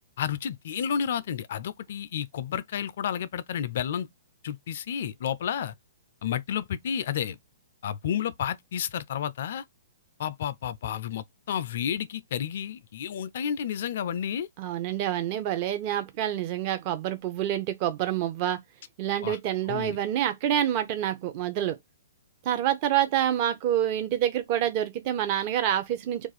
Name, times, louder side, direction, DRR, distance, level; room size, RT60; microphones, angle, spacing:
voice 1, 0.2-4.1 4.4-5.7 6.2-7.4 7.8-9.6 10.2-14.5 19.2-19.4 19.7-20.0, left 8 dB, 60° left, 0.3 m, -31 dB
voice 2, 14.6-18.6 19.0-21.8 22.4-26.3, right 11 dB, 40° right, 0.6 m, -27 dB
2.4 x 2.3 x 4.0 m
hypercardioid pair, 125°, 0 cm